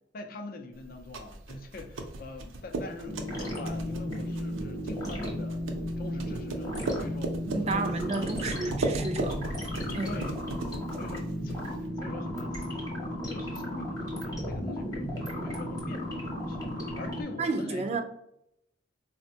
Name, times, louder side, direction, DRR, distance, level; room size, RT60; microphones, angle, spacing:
voice 1, 0.1-5.6 6.0-8.6 10.0-10.5 10.9-11.6 12.0-18.0, left 3 dB, 45° left, 0.4 m, -44 dB
sound 1, 0.8-11.9, right 2 dB, 85° right, 0.5 m, -37 dB
sound 2, 3.1-17.2, equal, 20° left, 0.8 m, -34 dB
voice 2, 7.5-9.4 9.9-10.1 17.4-18.0, right 3 dB, 35° right, 0.3 m, -31 dB
4.1 x 2.1 x 2.7 m
head